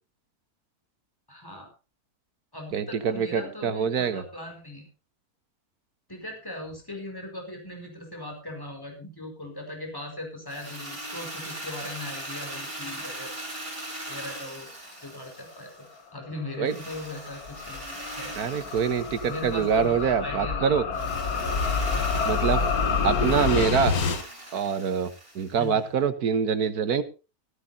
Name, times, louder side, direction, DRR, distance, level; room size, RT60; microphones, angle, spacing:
voice 1, 1.3-1.7 2.5-4.9 6.1-13.3 14.1-14.7 15.0-15.7 16.1-18.3 19.3-19.9 20.2-20.7 21.3-21.4 22.1-22.6 25.5-25.8, left 1 dB, 15° left, 2 dB, 4.8 m, -39 dB
voice 2, 2.7-4.2 16.6-16.7 18.3-20.8 22.3-22.6 23.0-24.0 24.5-27.0, right 7 dB, 80° right, 11 dB, 1.7 m, -25 dB
Drill, 10.5-16.0 16.6-19.9 20.9-25.7, right 1 dB, 20° right, 5.2 m, -40 dB
sound 1, 16.4-24.2, left 5 dB, 80° left, 1.9 m, -28 dB
17.5 x 14.5 x 2.8 m, 0.30 s
omnidirectional pair, 1.6 m